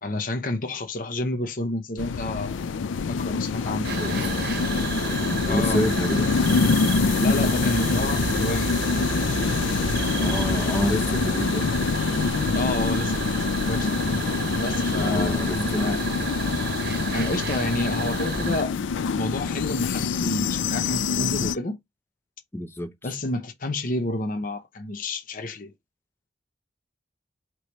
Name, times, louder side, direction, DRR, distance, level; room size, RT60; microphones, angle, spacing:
voice 1, 0.0-2.6 3.1-4.0 5.5-5.8 7.2-8.9 12.5-14.0 14.6-16.0 17.1-18.7 19.1-21.8 23.0-25.7, left 2 dB, 45° left, 0.7 m, -29 dB
sound 1, 2.0-21.6, left 5 dB, 75° left, 0.4 m, -25 dB
voice 2, 3.7-4.3 4.8-6.3 10.1-11.7 15.0-16.0 22.5-22.9, left 1 dB, 10° left, 0.5 m, -29 dB
sound 2, 3.8-18.6, right 5 dB, 55° right, 0.8 m, -31 dB
4.7 x 3.0 x 3.0 m
head